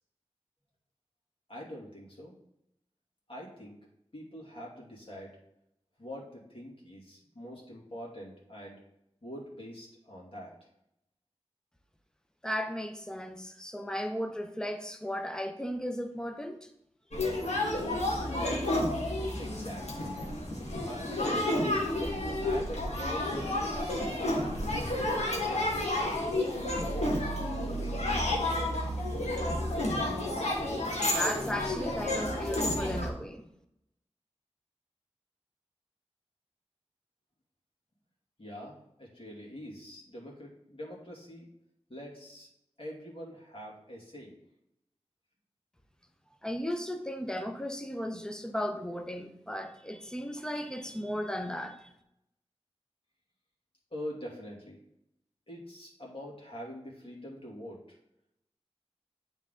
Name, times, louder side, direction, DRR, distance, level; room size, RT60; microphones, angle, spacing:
voice 1, 1.5-2.3 3.3-3.8 4.1-5.4 6.0-8.8 9.2-10.5 19.4-20.2 20.8-21.2 21.8-24.1 24.7-26.3 26.8-29.1 38.4-41.5 41.9-42.5 42.8-44.3 53.9-54.8 55.5-58.0, equal, 55° left, -4 dB, 2.4 m, -44 dB
voice 2, 12.4-16.7 31.1-33.5 46.4-51.9, equal, 5° left, 5 dB, 0.9 m, -35 dB
sound 1, 17.1-33.1, left 1 dB, 85° left, 1.5 m, -31 dB
9.2 x 3.7 x 3.8 m, 0.80 s
wide cardioid pair, 45°, 11 cm